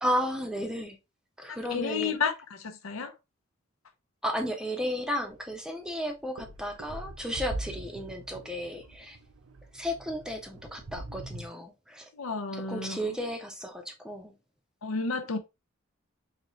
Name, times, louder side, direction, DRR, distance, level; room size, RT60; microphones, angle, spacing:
voice 1, 0.0-1.0 1.4-2.2 4.2-9.2 9.7-12.1 12.5-14.3, equal, 5° right, 0.6 m, -33 dB
voice 2, 1.5-2.3 2.6-3.1 12.1-13.0 14.8-15.4, left 4 dB, 85° left, 0.7 m, -31 dB
sound 1, 5.2-5.3 5.9-11.5, right 2 dB, 85° right, 0.6 m, -42 dB
4.1 x 2.8 x 3.1 m
head